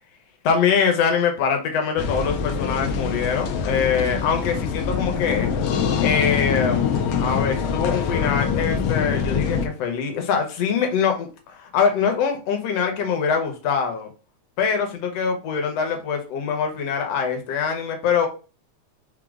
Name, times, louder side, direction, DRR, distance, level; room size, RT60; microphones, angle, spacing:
voice 1, 0.4-5.5 6.0-14.1 14.6-18.3, left 6 dB, 65° left, 4 dB, 1.8 m, -23 dB
sound 1, 2.0-9.7, left 6 dB, 80° left, 1.3 m, -24 dB
5.0 x 2.8 x 3.6 m, 0.34 s
omnidirectional pair, 3.4 m